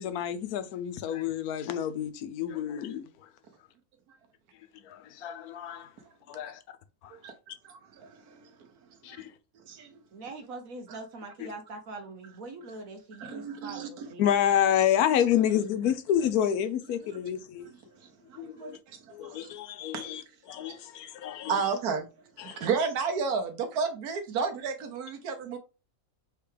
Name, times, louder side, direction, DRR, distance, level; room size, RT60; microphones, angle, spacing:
voice 1, 0.0-3.3 4.7-5.9 6.3-6.6 7.0-7.2 9.0-9.3 11.4-11.5 14.2-17.6 18.4-18.8 19.1-21.7 22.4-22.7, left 10 dB, 80° left, 1.1 m, -29 dB
voice 2, 7.6-8.7 9.0-9.2 9.5-10.0 10.9-11.0 13.2-14.1 18.0-19.5 19.9-20.2 21.5-25.6, right 5 dB, 90° right, 1.4 m, -33 dB
voice 3, 10.1-14.2, right 2 dB, 65° right, 1.4 m, -43 dB
4.5 x 3.3 x 3.2 m
omnidirectional pair, 1.6 m